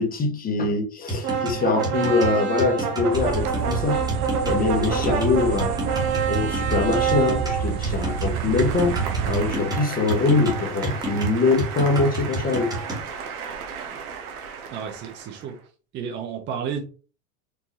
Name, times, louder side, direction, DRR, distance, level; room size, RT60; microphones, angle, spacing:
voice 1, 0.0-4.0 4.4-5.8 6.3-9.0 9.3-12.7, left 3 dB, 20° left, 0.9 m, -23 dB
sound 1, 1.1-13.1, right 1 dB, 10° right, 1.4 m, -30 dB
sound 2, 1.2-15.4, right 7 dB, 85° right, 1.2 m, -29 dB
sound 3, 3.1-9.6, right 7 dB, 65° right, 0.7 m, -29 dB
voice 2, 4.8-5.3 14.7-15.6 15.9-16.8, right 7 dB, 25° right, 0.6 m, -32 dB
4.6 x 2.6 x 3.0 m
supercardioid pair, 135°, 43 cm